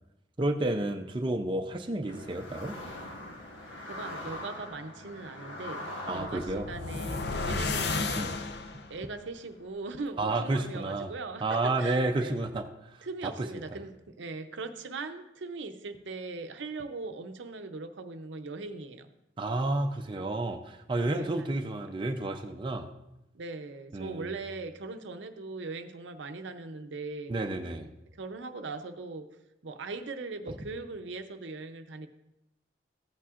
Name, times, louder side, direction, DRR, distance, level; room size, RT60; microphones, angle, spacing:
voice 1, 0.4-2.7 6.1-6.7 8.2-8.3 10.2-11.1 11.4-13.5 19.4-22.9 23.9-24.3 27.3-27.9, right 2 dB, 25° right, 3 dB, 0.5 m, -31 dB
sound 1, 2.1-10.2, left 1 dB, 90° left, 1.5 m, -44 dB
voice 2, 3.9-8.4 8.9-12.4 13.0-19.1 21.0-21.5 23.3-27.3 28.1-29.3 29.6-32.1, right 3 dB, 70° right, 7 dB, 0.6 m, -40 dB
sound 2, 6.2-9.0, left 3 dB, 55° left, 0.6 m, -33 dB
14.5 x 8.4 x 2.5 m, 0.89 s
head